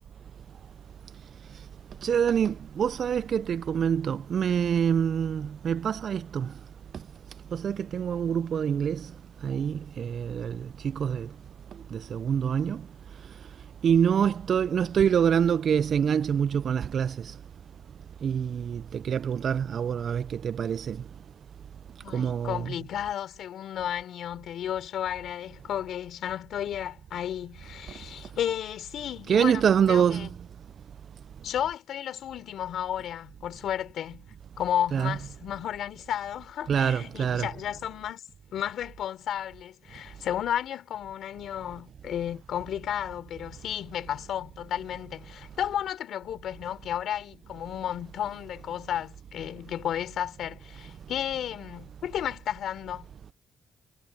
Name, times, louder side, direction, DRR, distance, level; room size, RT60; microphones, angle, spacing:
voice 1, 2.0-6.5 7.5-9.1 9.4-11.3 11.9-12.8 13.8-17.3 18.2-21.0 22.1-22.7 29.3-30.3 34.9-35.2 36.7-37.5, right 8 dB, 55° right, 0.3 m, -26 dB
voice 2, 22.0-30.3 31.4-38.2 38.5-53.1, left 10 dB, 70° left, 3.9 m, -33 dB
cardioid pair, 90°, 0 cm